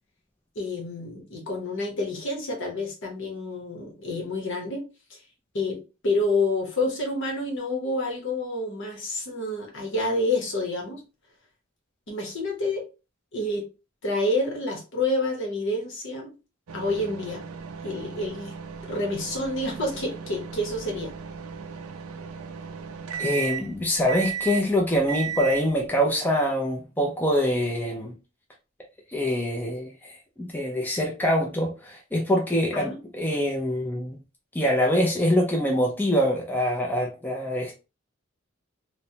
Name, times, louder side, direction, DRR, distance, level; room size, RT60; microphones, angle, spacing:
voice 1, 0.5-5.2 5.5-5.8 6.0-11.0 12.1-12.8 13.3-13.6 14.0-16.4 16.7-17.4 17.8-18.6 18.8-21.1 32.7-33.0, left 2 dB, 60° left, 0.9 m, -28 dB
sound 1, 16.7-25.9, right 7 dB, 80° right, 0.4 m, -36 dB
voice 2, 23.2-28.1 29.1-34.2 34.5-37.8, equal, 10° left, 0.4 m, -24 dB
3.1 x 2.1 x 2.7 m
head